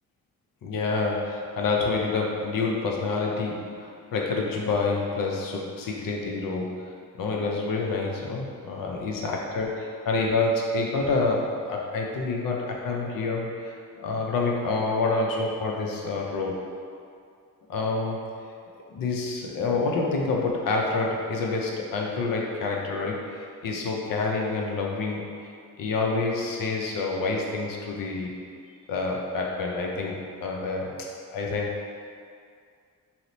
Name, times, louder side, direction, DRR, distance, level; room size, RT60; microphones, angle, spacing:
voice 1, 0.6-16.6 17.7-18.3 18.9-25.5 25.8-28.4 28.9-31.8, left 3 dB, 65° left, -1 dB, 0.6 m, -28 dB
2.8 x 2.0 x 3.9 m, 2.3 s
cardioid pair, 65°, 35 cm